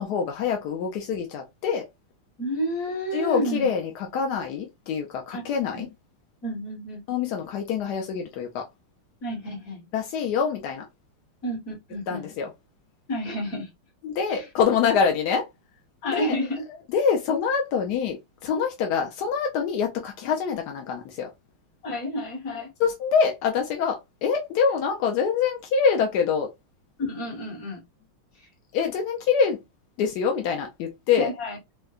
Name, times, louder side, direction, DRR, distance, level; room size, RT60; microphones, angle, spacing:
voice 1, 0.0-1.8 3.1-5.9 7.1-8.6 9.9-10.8 12.1-12.5 14.0-15.5 16.0-16.4 16.9-21.3 22.8-26.5 28.7-29.6 30.0-31.3, left 6 dB, 75° left, 0.9 m, -25 dB
voice 2, 2.4-3.7 5.3-5.4 5.7-5.9 6.4-7.0 9.2-9.9 11.4-12.2 13.1-13.7 14.3-14.5 16.0-16.6 21.8-22.7 27.0-27.8 28.4-28.5 31.2-31.6, equal, 45° left, 1.6 m, -30 dB
4.4 x 2.2 x 2.3 m
omnidirectional pair, 2.3 m